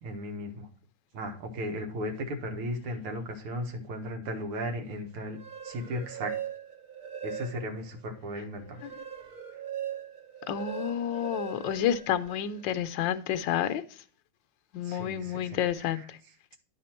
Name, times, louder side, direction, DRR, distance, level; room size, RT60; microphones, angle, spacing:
voice 1, 0.0-0.7 1.1-5.4 5.6-6.4 7.2-8.8 14.8-16.3, equal, 90° right, 2.3 m, -36 dB
sound 1, 5.2-7.9 8.3-12.6, right 8 dB, 55° right, 0.5 m, -40 dB
voice 2, 10.5-13.8 14.7-16.0, left 10 dB, 75° left, 1.2 m, -29 dB
11.0 x 4.2 x 4.4 m
omnidirectional pair, 2.3 m